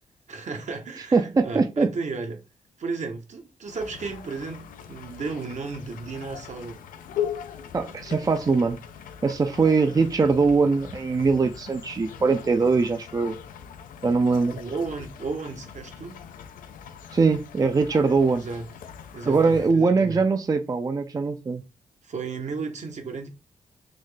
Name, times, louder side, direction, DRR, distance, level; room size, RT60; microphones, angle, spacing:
voice 1, 0.3-2.4 2.8-6.8 14.5-16.2 18.3-18.7 19.1-20.2 22.0-23.3, right 4 dB, 60° right, 0.9 m, -34 dB
voice 2, 1.1-1.9 7.7-8.8 9.2-13.4 14.0-14.6 17.1-18.4 19.3-21.6, right 4 dB, 25° right, 0.4 m, -22 dB
sound 1, 3.7-19.7, left 9 dB, 90° left, 0.4 m, -40 dB
4.0 x 2.1 x 3.2 m
cardioid pair, 65°, 14 cm